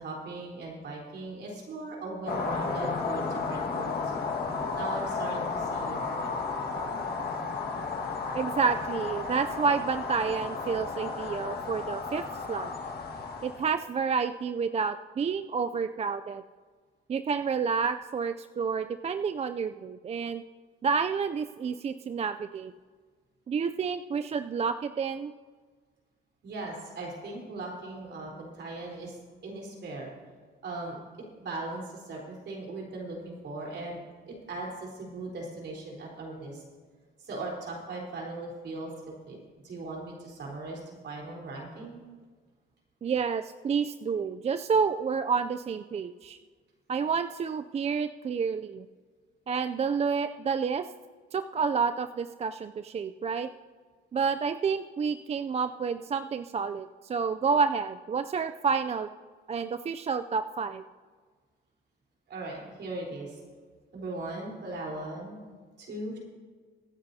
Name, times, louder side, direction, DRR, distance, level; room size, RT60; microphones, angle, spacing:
voice 1, 0.0-4.1 4.7-6.3 26.4-29.2 29.4-30.1 30.6-31.0 31.4-34.0 34.3-36.6 37.2-39.4 39.6-42.0 62.3-63.4 63.9-65.4 65.8-66.2, right 2 dB, 60° right, -1 dB, 4.0 m, -38 dB
sound 1, 2.3-13.8, left 4 dB, 55° left, 1.7 m, -33 dB
voice 2, 8.3-12.7 13.4-16.4 17.1-20.4 20.8-22.7 23.5-25.3 43.0-46.4 46.9-48.9 49.5-50.9 51.3-53.5 54.1-59.1 59.5-60.8, right 5 dB, 35° right, 10 dB, 0.4 m, -29 dB
24.0 x 9.4 x 2.8 m, 1.5 s
cardioid pair, 90°, 20 cm